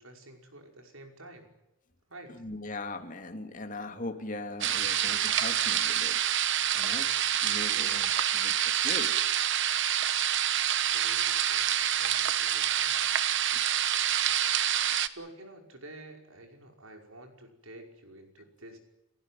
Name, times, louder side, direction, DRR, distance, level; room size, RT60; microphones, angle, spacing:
voice 1, 0.0-1.5 2.1-2.4 7.5-8.0 10.4-13.1 15.0-18.8, right 2 dB, 85° right, 4 dB, 5.4 m, -50 dB
voice 2, 2.4-6.2 6.7-7.1 7.4-8.1 8.3-8.5 8.8-9.1, left 2 dB, 40° left, 6 dB, 2.8 m, -39 dB
sound 1, 4.6-15.1, right 10 dB, 60° right, 1.1 m, -27 dB
30.0 x 15.5 x 9.3 m, 0.93 s
head